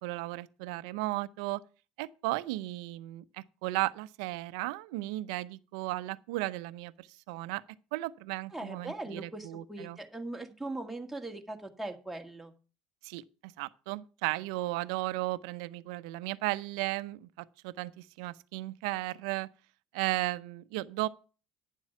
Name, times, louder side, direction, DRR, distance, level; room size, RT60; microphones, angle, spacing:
voice 1, 0.0-1.6 2.0-7.6 7.9-10.0 13.0-19.5 19.9-21.1, right 19 dB, 80° right, 0.6 m, -35 dB
voice 2, 8.5-12.5, right 2 dB, 5° right, 1.9 m, -40 dB
10.0 x 7.3 x 5.8 m
supercardioid pair, 90°, 3 cm